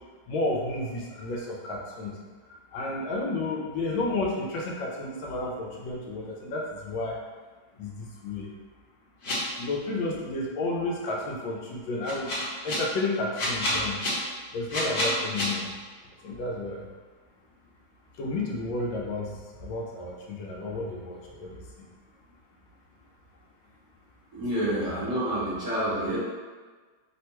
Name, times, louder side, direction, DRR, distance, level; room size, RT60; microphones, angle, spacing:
voice 1, 0.3-2.1 2.7-7.2 7.8-8.5 9.6-12.3 12.6-14.0 14.5-15.7 16.2-16.8 18.2-19.3 19.6-21.6, left 2 dB, 80° left, -2 dB, 1.2 m, -31 dB
sound 1, 9.2-9.3 12.1-12.8 13.3-14.1 14.7-15.4, left 1 dB, 60° left, 1.2 m, -28 dB
voice 2, 24.3-26.2, right 1 dB, 60° right, -10 dB, 1.0 m, -28 dB
3.3 x 2.1 x 2.9 m, 1.4 s
omnidirectional pair, 2.2 m